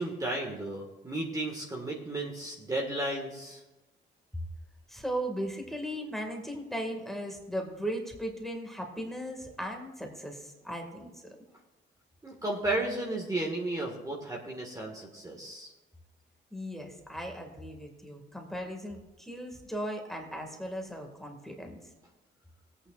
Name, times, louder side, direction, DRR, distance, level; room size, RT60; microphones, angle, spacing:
voice 1, 0.0-3.6 12.2-15.7, right 2 dB, 15° right, -1 dB, 1.7 m, -33 dB
voice 2, 4.9-11.2 16.5-21.8, equal, ahead, 2 dB, 1.9 m, -37 dB
17.0 x 8.8 x 2.4 m, 1.1 s
cardioid pair, 90°, 20 cm